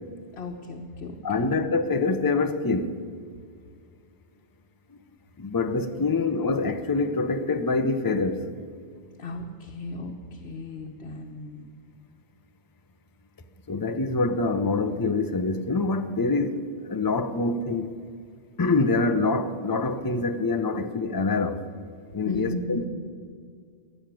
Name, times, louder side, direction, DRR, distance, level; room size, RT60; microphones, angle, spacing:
voice 1, 0.3-1.6 6.0-6.3 9.2-11.7 22.2-22.9, left 2 dB, 80° left, 1 dB, 1.3 m, -36 dB
voice 2, 1.2-2.9 5.4-8.5 13.7-17.9 18.6-21.6 22.1-22.8, left 3 dB, 25° left, 8 dB, 0.7 m, -25 dB
16.5 x 6.5 x 9.3 m, 2.1 s
omnidirectional pair, 1.0 m